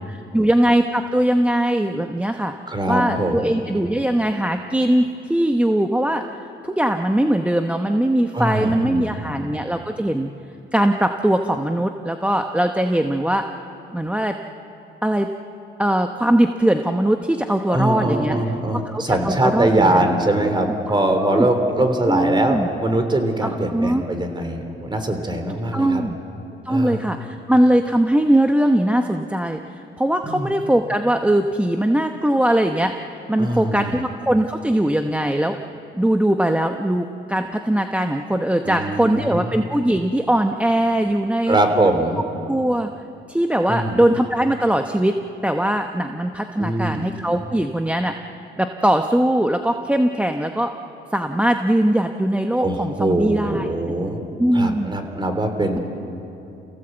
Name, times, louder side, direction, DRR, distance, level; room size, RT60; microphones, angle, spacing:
voice 1, 0.1-2.5 2.9-6.2 6.6-10.3 10.7-13.4 13.9-14.3 15.0-15.3 15.8-18.4 18.9-20.0 21.0-21.5 22.1-22.7 23.4-24.0 25.7-26.2 26.6-35.6 35.9-41.6 42.5-42.9 43.3-45.2 45.4-48.1 48.6-50.7 51.1-53.7 54.4-54.9, right 1 dB, 5° right, 5 dB, 1.0 m, -20 dB
voice 2, 2.7-3.4 8.3-9.3 17.7-26.0 26.7-27.0 30.2-30.5 33.4-34.0 38.6-39.6 41.5-42.2 43.7-44.0 46.6-47.0 52.6-54.2 54.5-55.8, right 1 dB, 25° right, 6 dB, 3.4 m, -22 dB
29.0 x 17.0 x 8.0 m, 2.8 s
cardioid pair, 90°, 20 cm